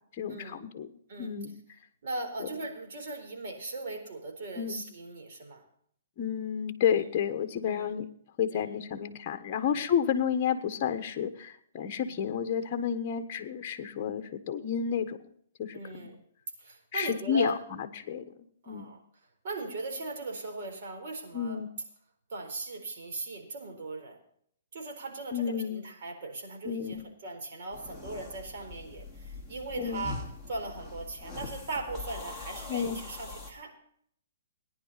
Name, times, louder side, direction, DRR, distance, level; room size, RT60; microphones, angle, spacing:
voice 1, 0.2-0.9 1.2-1.6 4.6-4.8 6.2-8.0 8.4-15.2 15.6-16.1 16.9-18.3 18.7-19.0 21.3-21.7 25.3-25.8 26.6-27.0 29.8-30.1 32.7-33.0, left 8 dB, 35° left, 7 dB, 1.3 m, -31 dB
voice 2, 2.0-5.6 6.9-7.1 7.6-7.9 8.5-8.7 9.6-9.8 12.0-12.2 15.7-16.2 16.6-17.6 18.6-19.0 19.4-21.6 22.3-24.2 24.7-33.8, right 2 dB, 55° right, 3 dB, 4.1 m, -39 dB
sound 1, 27.7-33.5, left 3 dB, 5° right, 2.4 m, -43 dB
18.5 x 10.5 x 4.1 m, 0.65 s
hypercardioid pair, 155°, 0 cm